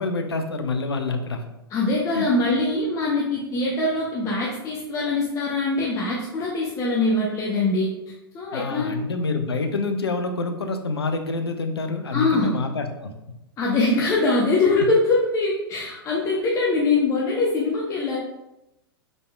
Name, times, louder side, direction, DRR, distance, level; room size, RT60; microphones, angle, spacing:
voice 1, 0.0-1.4 2.1-2.3 8.5-13.1, left 3 dB, 75° left, 7 dB, 0.6 m, -27 dB
voice 2, 1.7-7.9 8.3-8.9 12.1-12.6 13.6-18.2, left 2 dB, 25° left, -4 dB, 0.7 m, -23 dB
5.0 x 4.0 x 2.3 m, 0.92 s
figure-of-eight pair, 100°, 13 cm